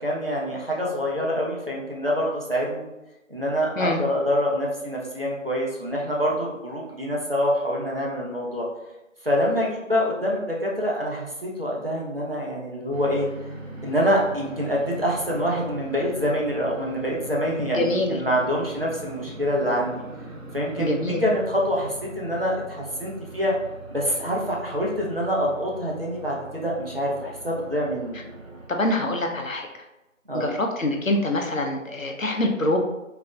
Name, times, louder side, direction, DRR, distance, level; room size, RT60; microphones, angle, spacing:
voice 1, 0.0-2.9 3.3-8.7 9.2-13.3 13.8-19.9 20.5-23.5 23.9-28.2 30.3-30.5, equal, 45° right, -3 dB, 0.9 m, -26 dB
sound 1, 12.9-28.7, right 1 dB, 75° right, 1.2 m, -41 dB
voice 2, 17.6-18.2 20.8-21.2 28.7-29.7 30.3-32.8, left 1 dB, 80° left, 2 dB, 0.8 m, -25 dB
3.9 x 3.4 x 2.4 m, 0.98 s
figure-of-eight pair, 175°, 40 cm